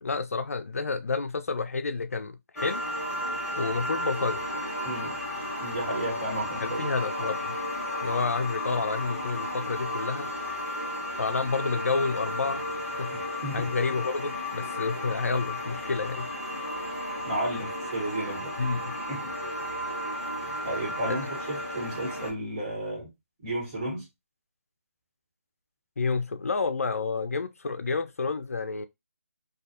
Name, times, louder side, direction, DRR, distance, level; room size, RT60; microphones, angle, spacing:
voice 1, 0.0-2.9 3.5-4.4 6.6-7.6 8.0-10.3 11.2-12.6 13.0-13.1 13.5-16.3 18.6-18.9 21.0-21.2 26.0-28.9, left 4 dB, 70° left, 0.4 m, -29 dB
sound 1, 2.6-22.3, left 1 dB, ahead, 1.0 m, -33 dB
voice 2, 4.8-5.2 5.6-6.9 7.2-7.3 13.4-13.6 17.2-18.5 19.1-19.3 20.6-23.1 23.4-24.1, right 1 dB, 25° right, 1.3 m, -33 dB
2.4 x 2.3 x 2.7 m
figure-of-eight pair, 165°, 8 cm